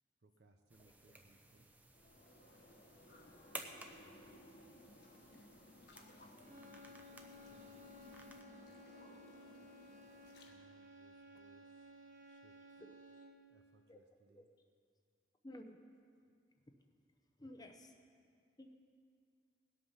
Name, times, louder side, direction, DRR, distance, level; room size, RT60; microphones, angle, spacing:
voice 1, 0.2-1.7 3.5-4.7 6.3-6.5 6.9-7.1 7.5-8.8 10.5-11.9 12.2-12.6 13.5-14.4, right 2 dB, 65° right, 4 dB, 0.7 m, -70 dB
sound 1, 0.7-8.4, right 2 dB, 10° right, 0.8 m, -56 dB
voice 2, 0.8-1.2 12.8-13.0 13.9-14.0 14.3-14.5 15.4-15.8 17.4-18.0 18.6-18.8, left 1 dB, 25° left, 5 dB, 0.8 m, -54 dB
sound 2, 1.9-10.5, left 1 dB, 65° left, 1.6 m, -60 dB
sound 3, 6.4-13.6, left 1 dB, 45° right, 1.5 m, -57 dB
18.5 x 8.5 x 5.6 m, 2.2 s
head